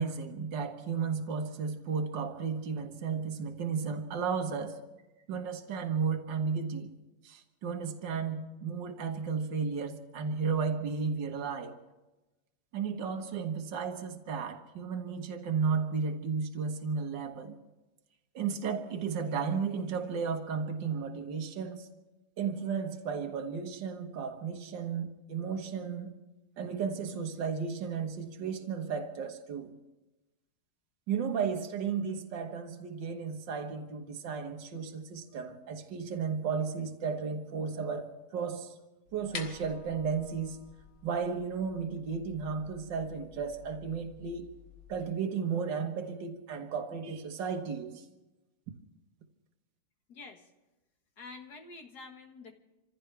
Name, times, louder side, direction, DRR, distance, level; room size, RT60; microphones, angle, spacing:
voice 1, 0.0-4.8 5.3-6.9 7.2-11.8 12.7-17.6 18.3-21.9 22.4-26.1 26.6-29.8 31.1-38.8 39.1-40.6 41.0-44.5 44.9-48.1, right 6 dB, 65° right, 5 dB, 2.0 m, -34 dB
sound 1, 39.1-45.0, left 6 dB, 85° left, 2.4 m, -49 dB
voice 2, 50.1-50.5 51.2-52.6, left 3 dB, 55° left, 4 dB, 2.0 m, -48 dB
27.0 x 15.5 x 3.4 m, 1.0 s
omnidirectional pair, 2.2 m